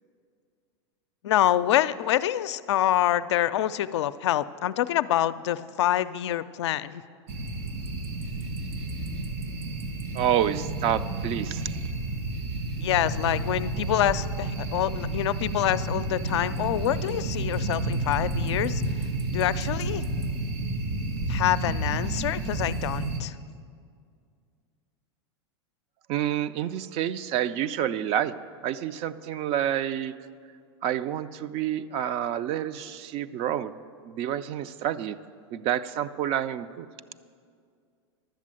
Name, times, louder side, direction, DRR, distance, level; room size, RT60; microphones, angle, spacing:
voice 1, 1.2-7.0 12.8-18.8 19.3-20.1 21.3-23.4, left 12 dB, 80° left, 13 dB, 0.4 m, -26 dB
sound 1, 7.3-23.2, right 2 dB, 60° right, 1.8 m, -31 dB
voice 2, 10.1-11.9 26.1-28.4 28.6-30.1 30.8-33.7 34.0-35.2 35.5-36.9, right 10 dB, 45° right, 13 dB, 0.4 m, -28 dB
11.5 x 7.5 x 7.5 m, 2.2 s
hypercardioid pair, 110°, 14 cm